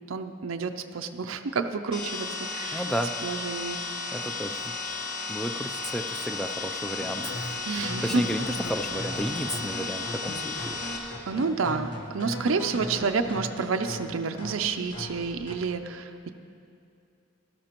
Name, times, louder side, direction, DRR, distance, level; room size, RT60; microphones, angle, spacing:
voice 1, 0.1-2.9 3.2-4.1 7.7-8.3 11.3-16.3, right 4 dB, 65° right, 6 dB, 0.5 m, -29 dB
sound 1, 1.9-11.0, left 3 dB, 40° left, 1.5 m, -34 dB
voice 2, 2.7-3.1 4.1-4.6 5.3-10.8, equal, ahead, 7 dB, 0.3 m, -33 dB
sound 2, 7.0-15.7, left 1 dB, 85° left, 1.3 m, -38 dB
15.0 x 12.5 x 3.0 m, 2.5 s
head